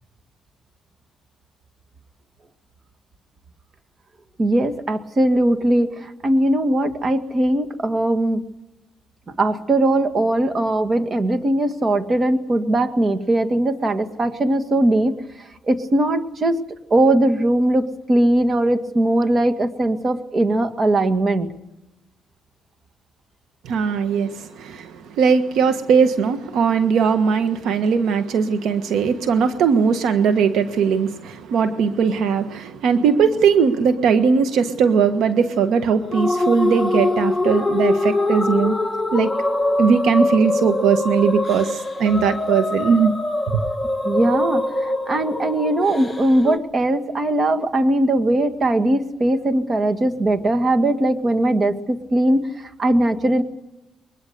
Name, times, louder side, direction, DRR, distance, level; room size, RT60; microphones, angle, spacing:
voice 1, 4.4-8.4 9.3-15.2 15.6-16.6 16.9-21.5 44.0-53.4, right 1 dB, 35° right, 2.0 m, -20 dB
voice 2, 23.6-38.7 39.1-39.3 39.8-43.1 43.5-43.6, right 6 dB, 80° right, 1.4 m, -19 dB
sound 1, 36.1-46.6, left 2 dB, 5° left, 2.2 m, -23 dB
23.0 x 20.5 x 6.8 m
cardioid pair, 90°, 0 cm